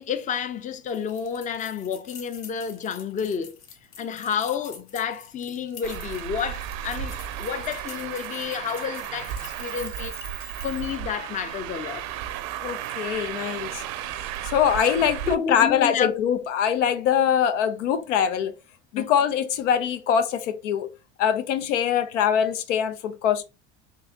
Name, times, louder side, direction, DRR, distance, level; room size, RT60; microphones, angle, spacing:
voice 1, 0.0-3.6 4.0-10.2 10.6-12.0 15.0-16.2 19.0-19.1, left 7 dB, 20° left, 0.4 m, -30 dB
sound 1, 0.9-11.0, left 7 dB, 65° left, 1.1 m, -46 dB
Traffic noise roadway noise, 5.8-15.3, right 11 dB, 65° right, 0.6 m, -34 dB
voice 2, 12.6-14.0 14.4-18.5 18.9-20.9 21.2-23.4, left 8 dB, 90° left, 0.6 m, -23 dB
3.8 x 2.8 x 2.8 m
hypercardioid pair, 90°, 35 cm